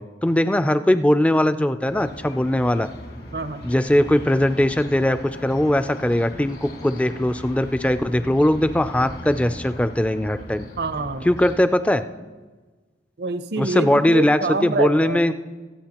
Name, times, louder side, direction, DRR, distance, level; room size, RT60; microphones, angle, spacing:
voice 1, 0.0-2.9 3.6-10.6 11.3-12.0 13.6-15.3, left 1 dB, 5° left, 11 dB, 0.3 m, -20 dB
sound 1, 1.9-11.6, left 1 dB, 60° left, 1.8 m, -39 dB
voice 2, 3.3-3.7 10.8-11.3 13.2-15.3, right 3 dB, 65° right, 11 dB, 0.6 m, -26 dB
24.5 x 8.3 x 2.9 m, 1.3 s
head